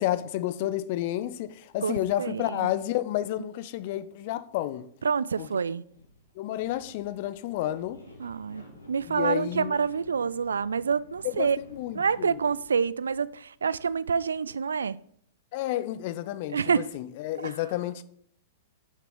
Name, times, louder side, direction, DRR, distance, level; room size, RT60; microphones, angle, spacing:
voice 1, 0.0-4.9 5.4-5.5 6.4-8.0 9.0-9.8 11.2-12.4 15.5-18.0, left 13 dB, 45° left, 0.6 m, -31 dB
voice 2, 1.8-2.7 5.0-5.8 8.2-11.6 11.9-15.0 16.5-16.8 17.4-17.6, right 6 dB, 70° right, 0.3 m, -27 dB
sound 1, 5.9-6.3 6.6-13.9, left 1 dB, 85° left, 1.8 m, -51 dB
6.7 x 5.9 x 6.1 m
figure-of-eight pair, 105°, 0 cm